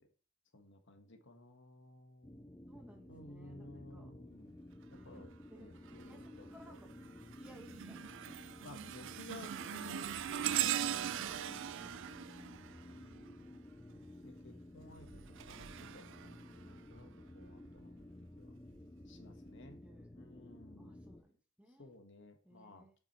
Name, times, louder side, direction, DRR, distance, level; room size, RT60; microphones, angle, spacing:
voice 1, 0.5-2.5 3.1-4.6 5.0-5.3 5.5-6.8 8.6-10.2 11.2-12.1 12.4-13.0 14.2-18.1 18.4-18.5 19.1-19.8 20.1-21.0 21.8-22.9, left 2 dB, 55° left, 5 dB, 1.4 m, -56 dB
sound 1, 2.2-21.2, left 1 dB, 10° left, 0.5 m, -54 dB
voice 2, 2.7-4.1 4.9-6.9 7.4-8.2 8.6-8.7 9.1-9.3 19.8-20.4 20.8-22.0 22.4-22.9, right 1 dB, 5° right, 3 dB, 1.4 m, -60 dB
sound 2, 5.9-6.3 6.8-13.6 14.8-17.0 17.7-17.8 18.7-18.8, right 11 dB, 55° right, 0.4 m, -40 dB
8.7 x 6.3 x 4.2 m, 0.39 s
head